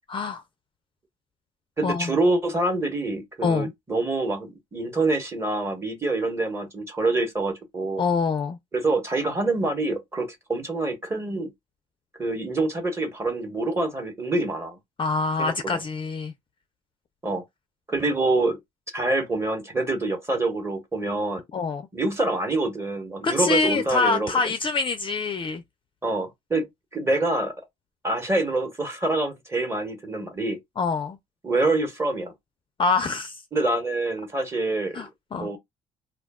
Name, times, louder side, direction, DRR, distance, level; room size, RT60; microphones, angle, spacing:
voice 1, 0.1-0.4 1.8-2.1 3.4-3.7 8.0-8.6 15.0-16.3 21.5-21.8 23.2-25.6 30.8-31.2 32.8-33.4 34.9-35.5, left 4 dB, 30° left, 0.4 m, -25 dB
voice 2, 1.8-8.0 8.7-11.5 12.2-14.8 15.4-15.8 17.2-17.4 17.9-18.6 18.9-21.4 21.9-24.5 26.0-26.7 26.9-27.5 28.0-30.6 31.4-32.3 33.5-35.0 35.3-35.6, right 2 dB, 15° right, 1.1 m, -26 dB
2.3 x 2.2 x 3.5 m
cardioid pair, 110°, 17 cm